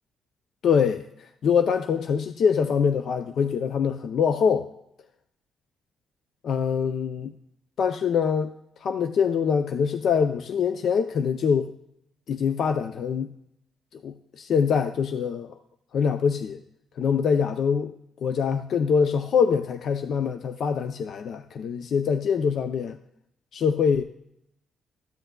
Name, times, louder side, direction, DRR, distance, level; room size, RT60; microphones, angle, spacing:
voice 1, 0.6-4.7 6.4-7.3 7.8-8.6 8.8-11.7 12.3-13.3 13.9-15.6 15.9-16.6 17.0-17.9 18.2-23.0 23.5-24.0, left 6 dB, 65° left, 8 dB, 0.5 m, -24 dB
13.0 x 7.9 x 2.2 m, 0.77 s
cardioid pair, 95°, 0 cm